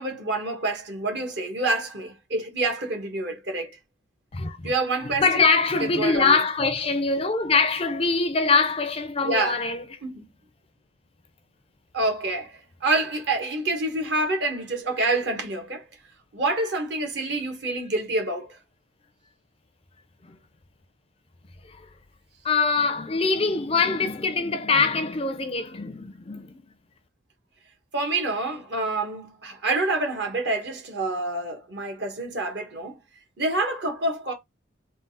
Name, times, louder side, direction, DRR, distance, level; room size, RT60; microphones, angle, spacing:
voice 1, 0.0-3.8 4.6-5.4 5.8-6.4 9.2-9.6 10.0-10.3 11.9-15.8 16.3-18.6 27.9-33.0 33.4-34.3, right 2 dB, 55° right, 1.3 m, -27 dB
voice 2, 4.3-4.7 5.0-10.0 20.2-20.4 21.7-21.8 22.4-26.7, left 4 dB, 30° left, 0.4 m, -23 dB
3.7 x 2.4 x 4.1 m
head